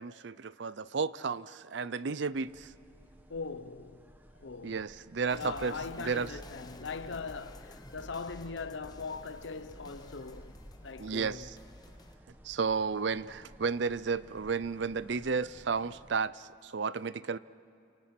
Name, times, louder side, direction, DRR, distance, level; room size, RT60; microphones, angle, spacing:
voice 1, 0.0-2.7 4.6-6.4 11.0-11.6 12.4-17.4, right 5 dB, 65° right, 0.5 m, -33 dB
sound 1, 2.3-16.2, equal, 10° right, 1.1 m, -57 dB
voice 2, 3.3-4.0 4.4-4.8 5.3-10.5 10.8-11.5, left 4 dB, 70° left, 0.8 m, -40 dB
Madness Clip, 5.3-12.2, left 1 dB, 20° left, 1.0 m, -51 dB
29.5 x 28.0 x 6.0 m
head